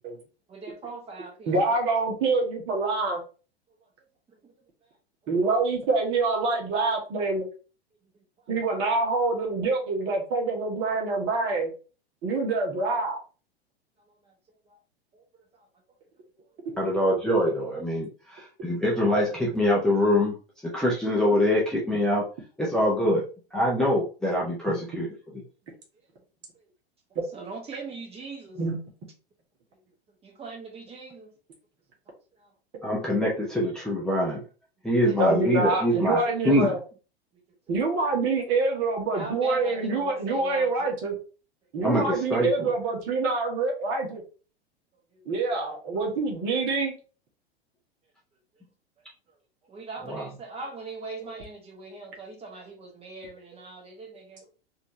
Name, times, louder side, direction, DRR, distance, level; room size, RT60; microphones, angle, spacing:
voice 1, 0.5-1.5 4.4-4.5 8.1-8.2 14.2-14.3 14.7-14.8 15.1-15.2 27.3-28.6 30.2-31.3 32.4-32.5 34.8-36.8 39.1-41.0 45.1-45.3 49.7-54.5, right 3 dB, 20° right, 1 dB, 1.4 m, -41 dB
voice 2, 1.5-3.2 5.3-7.5 8.5-11.7 12.2-13.2 27.2-27.3 28.6-28.8 35.2-36.8 37.7-41.2 41.7-44.2 45.3-46.9 51.3-51.4, right 3 dB, 40° right, 0 dB, 1.6 m, -26 dB
voice 3, 16.8-20.4 20.7-22.2 22.6-23.2 23.5-25.1 32.8-34.4 34.8-36.7 41.8-42.7 50.1-50.2, equal, ahead, -5 dB, 0.9 m, -24 dB
4.2 x 2.9 x 3.2 m, 0.36 s
figure-of-eight pair, 90°, 31 cm